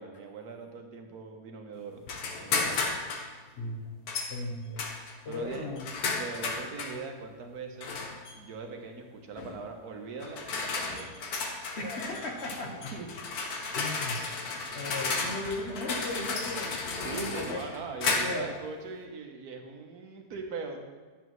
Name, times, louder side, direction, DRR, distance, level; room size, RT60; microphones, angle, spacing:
voice 1, 0.0-2.0 2.4-2.9 5.3-5.7 6.1-8.0 8.3-11.1 12.9-13.1 17.0-20.8, right 4 dB, 70° right, 3 dB, 1.4 m, -41 dB
sound 1, 2.1-3.3 4.1-4.3 4.8-7.0 7.8-8.3 9.4-9.6 10.2-18.5, left 4 dB, 70° left, 1.4 m, -33 dB
voice 2, 3.6-4.0 4.3-4.9 5.2-5.9 11.8-12.9 13.7-14.3 14.7-17.6 18.2-18.5, left 2 dB, 50° left, 2 dB, 1.0 m, -36 dB
10.0 x 7.0 x 3.1 m, 1.4 s
omnidirectional pair, 1.7 m